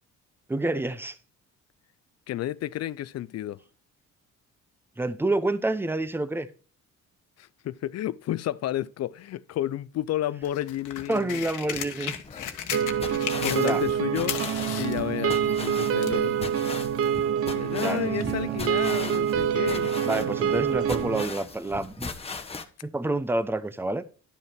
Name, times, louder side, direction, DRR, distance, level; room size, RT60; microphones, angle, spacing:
voice 1, 0.5-1.2 5.0-6.5 11.1-12.1 13.6-13.8 17.7-18.6 20.0-22.1 22.8-24.0, right 2 dB, 5° right, 0.7 m, -28 dB
voice 2, 2.3-3.6 7.4-11.4 13.4-14.4 14.8-16.3 17.5-19.9, left 13 dB, 60° left, 0.4 m, -31 dB
sound 1, 10.4-14.0 14.2-16.2 17.1-17.2, left 10 dB, 85° left, 1.2 m, -35 dB
sound 2, 12.2-22.6, left 4 dB, 20° left, 1.1 m, -39 dB
sound 3, 12.7-21.3, right 8 dB, 50° right, 0.6 m, -26 dB
11.5 x 5.5 x 4.4 m
cardioid pair, 90°, 30 cm